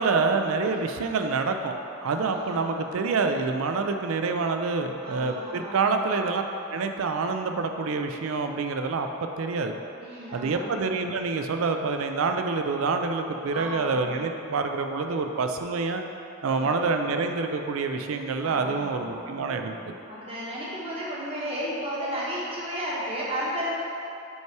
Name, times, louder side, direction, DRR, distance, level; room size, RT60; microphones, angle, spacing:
voice 1, 0.0-6.4 6.7-9.1 9.4-9.8 10.3-16.0 16.4-19.8, right 4 dB, 80° right, 6 dB, 0.4 m, -27 dB
voice 2, 2.0-2.8 5.0-6.1 10.0-10.6 13.5-13.9 16.4-16.7 18.4-23.7, equal, 25° right, -6 dB, 1.1 m, -34 dB
5.4 x 4.7 x 4.6 m, 2.8 s
head